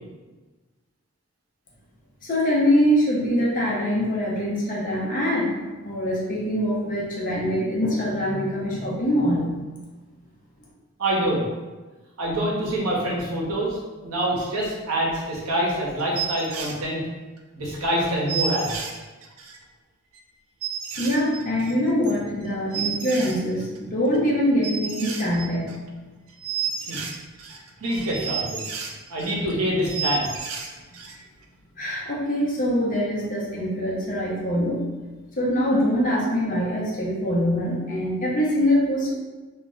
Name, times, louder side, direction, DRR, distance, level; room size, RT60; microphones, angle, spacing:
voice 1, 2.2-5.5 5.8-9.6 21.0-25.8 31.8-34.8 35.4-39.1, equal, 35° left, -4 dB, 0.6 m, -23 dB
voice 2, 11.0-11.4 12.2-13.8 14.0-17.0 17.6-18.9 26.9-27.0 27.8-28.7 29.1-30.2, right 1 dB, 90° right, -4 dB, 0.8 m, -25 dB
sound 1, 16.0-16.8 17.4-17.5 17.7-17.8 18.0-18.1 18.3-19.6 20.1-20.2 20.6-23.8 24.1-24.3 24.6-26.0 26.3-29.5 29.8-31.2 31.4-31.5, right 6 dB, 70° right, 0.3 m, -32 dB
2.3 x 2.1 x 3.6 m, 1.2 s
head